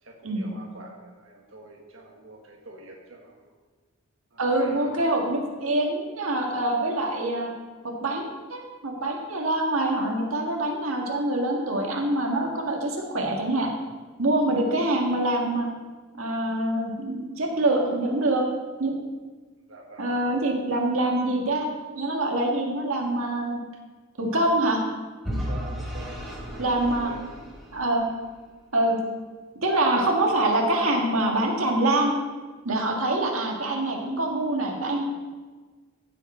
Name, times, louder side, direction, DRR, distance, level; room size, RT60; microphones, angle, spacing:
voice 1, 0.0-3.5 4.3-5.0 19.7-20.1 25.5-26.6 26.9-27.2 29.0-29.1, right 2 dB, 70° right, -1 dB, 1.6 m, -45 dB
voice 2, 4.4-7.5 7.8-13.7 14.2-15.7 16.2-18.4 18.8-19.0 20.0-21.7 22.0-23.6 24.2-24.8 26.6-27.1 27.7-28.1 28.7-29.0 29.6-32.1 32.6-35.0, right 1 dB, 90° right, 0 dB, 1.8 m, -25 dB
Vehicle / Engine, 25.2-28.3, equal, ahead, 3.1 m, -34 dB
15.5 x 7.1 x 4.3 m, 1.4 s
head